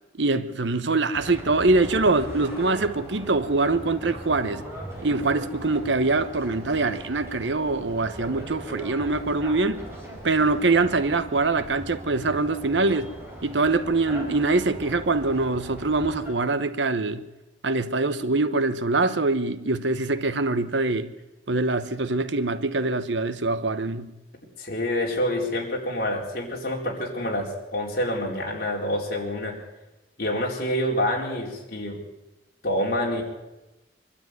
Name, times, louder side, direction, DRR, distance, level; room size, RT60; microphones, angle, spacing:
voice 1, 0.1-4.6 5.0-9.8 10.2-13.1 13.4-17.3 17.6-21.1 21.5-24.1, right 3 dB, 75° right, 1.1 m, -24 dB
sound 1, 1.1-16.3, right 1 dB, 15° right, 5.6 m, -39 dB
voice 2, 24.6-29.6 30.2-32.0 32.6-33.2, left 1 dB, 55° left, 4.5 m, -27 dB
23.5 x 12.5 x 9.4 m
head